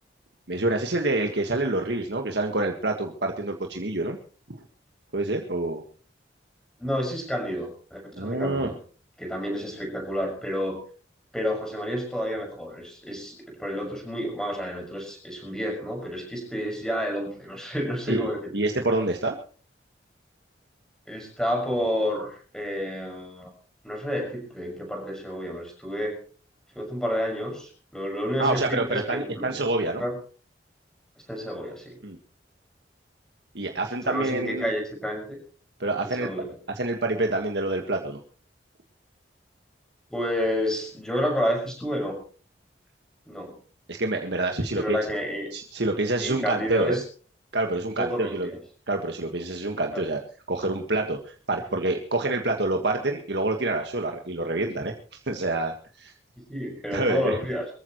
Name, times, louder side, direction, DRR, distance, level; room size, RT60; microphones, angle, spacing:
voice 1, 0.5-4.2 4.5-4.6 5.1-5.8 8.2-8.7 18.1-18.3 18.5-19.3 28.4-30.0 32.0-32.2 33.5-34.7 35.8-36.3 36.7-38.2 43.9-45.0 45.5-47.0 47.5-48.5 48.9-50.2 50.5-56.1 56.9-57.4, right 2 dB, 70° right, 3 dB, 1.7 m, -27 dB
voice 2, 6.8-8.7 9.2-10.8 11.3-18.5 21.1-23.5 23.8-26.2 26.7-29.7 30.0-30.2 31.3-32.0 34.1-35.4 36.2-36.5 40.1-42.2 43.3-43.5 44.8-45.5 46.2-47.0 48.0-48.6 49.9-50.1 56.5-57.7, equal, 5° left, 1 dB, 6.1 m, -30 dB
23.5 x 14.5 x 3.1 m, 0.40 s
head